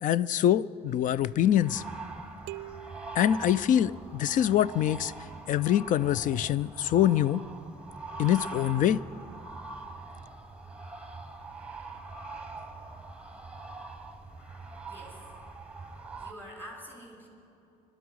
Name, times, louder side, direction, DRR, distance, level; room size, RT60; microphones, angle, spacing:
voice 1, 0.0-1.8 3.2-5.1 5.5-7.4 8.2-9.0, left 11 dB, 50° left, 20 dB, 0.4 m, -24 dB
sound 1, 0.9-16.3, right 3 dB, 5° right, 1.2 m, -43 dB
sound 2, 2.5-4.4, right 13 dB, 85° right, 0.4 m, -46 dB
voice 2, 14.9-15.3 16.2-17.3, equal, 10° left, -1 dB, 4.8 m, -46 dB
22.5 x 12.0 x 4.7 m, 2.8 s
cardioid pair, 110°, 17 cm